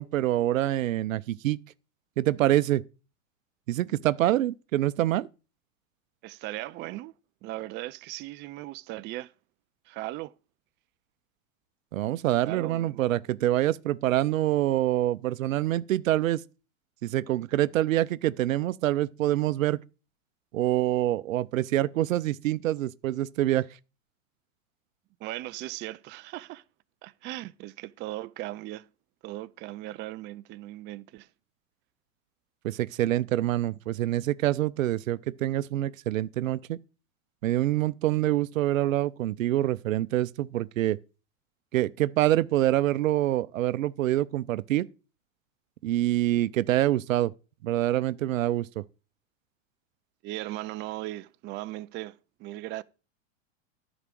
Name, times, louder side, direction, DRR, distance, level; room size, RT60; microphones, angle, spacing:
voice 1, 0.0-1.6 2.2-2.8 3.7-5.3 11.9-16.4 17.0-19.8 20.5-23.7 32.6-36.8 37.4-41.0 41.7-44.9 45.8-47.3 47.6-48.8, right 14 dB, 80° right, 0.7 m, -26 dB
voice 2, 6.2-7.1 7.4-9.3 9.9-10.3 12.4-13.2 25.2-26.6 27.0-28.9 29.2-31.3 50.2-52.8, right 17 dB, 30° right, 0.4 m, -38 dB
9.9 x 5.0 x 7.6 m
hypercardioid pair, 110°, 39 cm